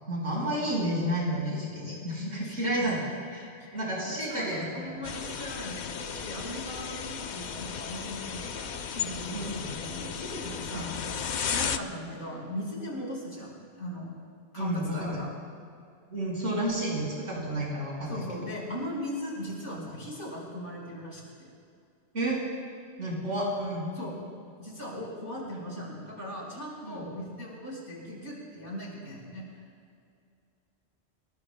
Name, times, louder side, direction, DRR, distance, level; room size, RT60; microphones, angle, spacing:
voice 1, 0.1-3.0 3.3-5.0 9.3-9.7 10.7-10.9 14.5-15.2 16.1-18.2 19.7-19.8 22.1-22.4 23.0-23.9 26.8-27.1, right 1 dB, 80° right, -4 dB, 5.4 m, -31 dB
voice 2, 4.2-14.1 14.5-15.3 18.1-21.5 23.9-24.2 24.6-29.5, equal, 85° left, -3 dB, 5.1 m, -38 dB
sound 1, 5.0-11.8, left 7 dB, 50° left, 0.6 m, -35 dB
29.0 x 19.0 x 2.2 m, 2.4 s
omnidirectional pair, 1.2 m